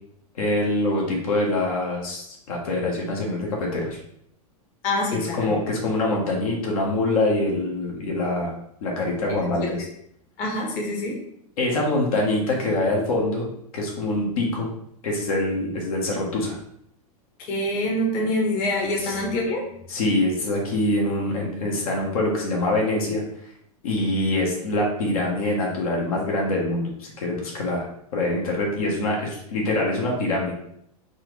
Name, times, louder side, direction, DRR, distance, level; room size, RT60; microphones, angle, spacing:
voice 1, 0.4-4.0 5.1-8.5 8.8-9.8 11.6-13.5 13.7-14.7 15.0-16.5 19.0-19.2 19.9-23.2 23.8-27.8 28.1-30.5, left 2 dB, 70° left, -2 dB, 1.2 m, -24 dB
voice 2, 4.8-5.5 9.3-9.7 10.4-11.2 17.5-19.7, left 1 dB, 40° left, -1 dB, 1.2 m, -26 dB
4.1 x 2.5 x 3.2 m, 0.71 s
hypercardioid pair, 115°, 19 cm